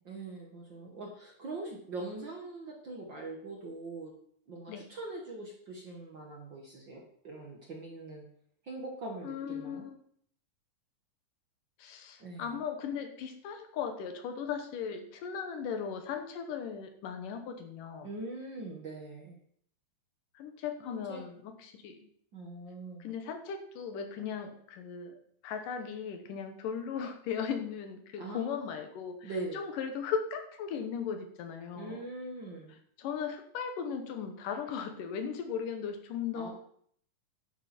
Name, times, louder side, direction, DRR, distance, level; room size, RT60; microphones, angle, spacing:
voice 1, 0.1-4.1 4.5-8.2 8.6-9.8 12.2-12.6 18.0-19.4 20.8-21.2 22.3-23.0 28.2-28.6 29.2-29.6 31.7-32.8 36.3-36.5, right 2 dB, 45° right, 0 dB, 1.7 m, -42 dB
voice 2, 9.2-10.0 11.8-18.1 20.3-22.0 23.0-25.1 25.4-32.0 33.0-36.5, left 7 dB, 75° left, 6 dB, 2.7 m, -37 dB
11.0 x 9.7 x 4.4 m, 0.64 s
omnidirectional pair, 3.9 m